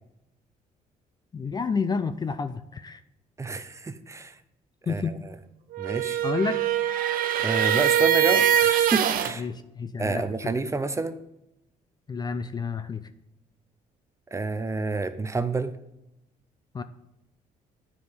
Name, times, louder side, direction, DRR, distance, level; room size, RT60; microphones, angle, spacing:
voice 1, 1.3-3.0 4.9-5.2 6.2-6.6 9.4-10.3 12.1-13.1 16.7-16.8, left 5 dB, 25° left, 11 dB, 0.5 m, -29 dB
voice 2, 3.4-4.4 4.9-5.2 5.8-6.2 7.4-9.5 10.0-11.2 14.3-15.7, right 3 dB, 20° right, 11 dB, 0.6 m, -29 dB
sound 1, 5.7-9.3, right 10 dB, 70° right, 0.7 m, -23 dB
9.4 x 4.9 x 5.3 m, 0.86 s
cardioid pair, 115°, 15 cm